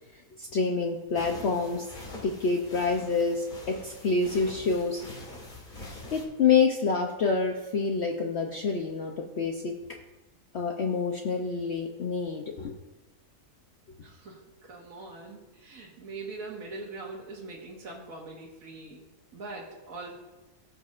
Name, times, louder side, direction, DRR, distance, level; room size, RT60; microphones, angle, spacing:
voice 1, 0.4-1.9 2.2-5.0 6.1-9.7 10.5-12.8, left 4 dB, 55° left, 2 dB, 0.8 m, -27 dB
sound 1, 1.1-6.2, left 2 dB, 35° left, 1.7 m, -44 dB
voice 2, 14.0-19.0 19.3-20.1, right 3 dB, 65° right, -4 dB, 1.7 m, -42 dB
19.5 x 6.4 x 2.5 m, 1.1 s
omnidirectional pair, 1.6 m